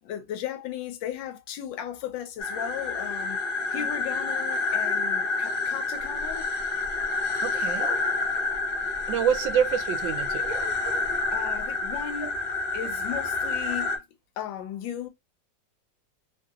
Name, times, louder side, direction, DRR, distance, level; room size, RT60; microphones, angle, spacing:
voice 1, 0.0-3.4 3.7-6.5 11.3-12.3 12.7-14.0 14.4-15.1, left 10 dB, 85° left, 1.4 m, -36 dB
sound 1, 2.4-14.0, left 3 dB, 65° left, 1.3 m, -28 dB
sound 2, 6.0-9.7 10.0-12.0, right 1 dB, 60° right, 0.9 m, -43 dB
voice 2, 7.4-7.9 9.1-10.5 12.2-12.3, right 8 dB, 85° right, 1.3 m, -27 dB
3.2 x 2.6 x 2.3 m
omnidirectional pair, 2.0 m